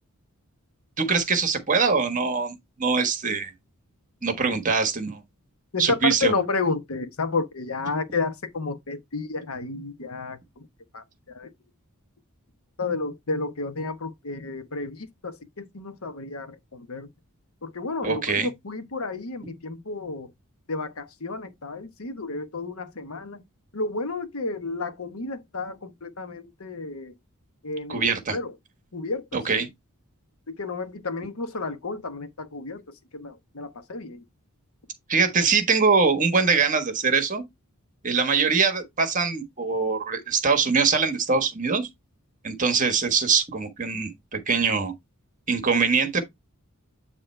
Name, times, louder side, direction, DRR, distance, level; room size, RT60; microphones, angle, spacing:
voice 1, 1.0-3.5 4.2-5.2 5.8-6.3 18.0-18.5 27.9-28.4 29.3-29.7 35.1-37.4 38.0-41.9 42.4-44.9 45.5-46.2, right 5 dB, 35° right, 1.3 m, -23 dB
voice 2, 5.7-10.4 10.9-11.0 11.3-11.5 12.8-17.1 17.6-20.3 20.7-23.4 23.7-27.1 27.6-28.0 28.3-28.5 28.9-29.2 29.6-29.7 30.5-32.8 33.1-34.2, left 3 dB, 75° left, 1.0 m, -31 dB
8.9 x 3.1 x 4.4 m
head